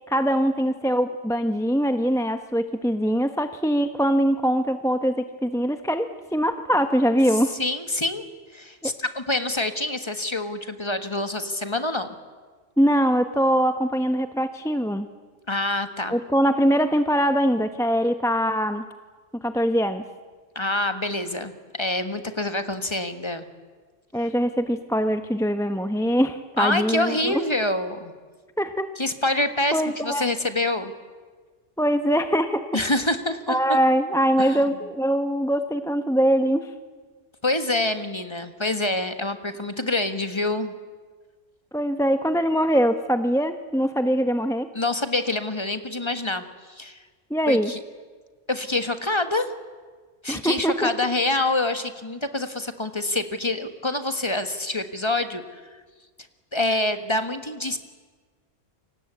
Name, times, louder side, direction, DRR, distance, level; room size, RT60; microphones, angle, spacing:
voice 1, 0.1-7.6 8.8-8.9 12.8-15.1 16.1-18.8 19.3-20.0 24.1-27.3 28.6-28.9 29.7-30.3 31.8-32.7 33.5-36.7 41.7-44.7 47.3-47.7 50.3-50.9, equal, 5° left, 9 dB, 0.7 m, -22 dB
voice 2, 7.6-8.3 8.5-12.1 15.5-16.1 20.5-21.5 21.8-23.4 26.6-28.1 29.0-30.9 32.7-33.6 34.4-34.6 37.4-40.7 44.7-47.0 47.5-47.8 48.5-49.5 50.2-55.6 56.5-57.8, left 2 dB, 25° left, 9 dB, 1.6 m, -26 dB
29.0 x 24.5 x 8.3 m, 1.5 s
omnidirectional pair, 1.3 m